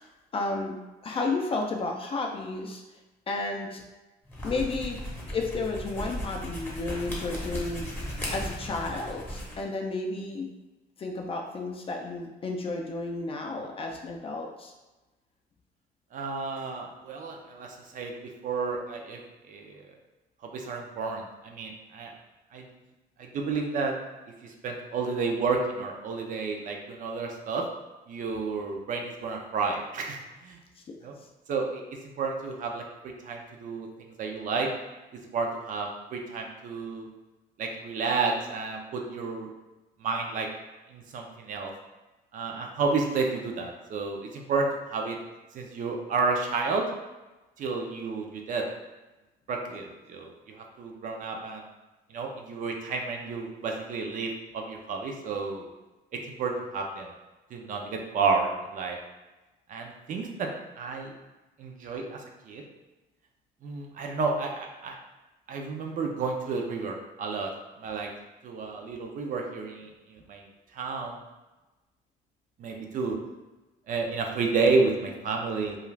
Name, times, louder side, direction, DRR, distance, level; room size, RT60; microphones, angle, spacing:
voice 1, 0.3-0.8 1.0-2.8 3.3-3.8 4.4-5.0 5.3-7.9 8.3-10.5 11.0-14.7 30.9-31.0 49.7-49.8, left 3 dB, 35° left, 2 dB, 0.4 m, -32 dB
sound 1, 4.2-9.6, equal, 10° left, 0.8 m, -36 dB
voice 2, 16.1-18.1 18.4-19.2 19.5-19.8 20.4-22.1 22.5-22.6 23.2-23.9 24.4-27.6 28.1-30.6 31.0-31.1 31.5-31.8 32.2-34.7 35.3-37.1 37.6-39.5 40.0-40.5 40.9-41.7 42.3-45.2 45.5-46.8 47.6-48.6 49.5-51.6 52.1-55.7 56.4-57.1 57.5-59.0 59.7-60.5 60.8-61.1 61.6-62.6 63.6-65.0 65.5-67.5 67.8-68.1 68.4-70.4 70.7-71.2 72.6-73.2 73.9-75.8, right 4 dB, 50° right, 2 dB, 0.5 m, -31 dB
2.4 x 2.4 x 3.1 m, 1.1 s
cardioid pair, 110°, 17 cm